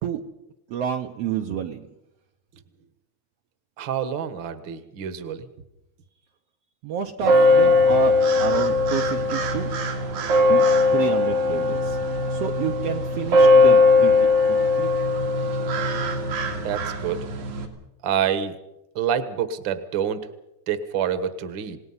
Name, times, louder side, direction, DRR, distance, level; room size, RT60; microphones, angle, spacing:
voice 1, 0.7-1.8 6.8-9.7 10.5-10.6 10.9-12.0 12.3-14.2 14.5-14.9, right 9 dB, 70° right, 3 dB, 1.8 m, -29 dB
voice 2, 3.8-5.5 16.5-17.2 18.0-18.6 18.9-20.2 20.7-21.8, right 8 dB, 50° right, 11 dB, 1.7 m, -27 dB
sound 1, 7.2-17.7, left 2 dB, 85° right, 3.7 m, -19 dB
28.0 x 18.5 x 5.6 m, 0.89 s
omnidirectional pair, 3.3 m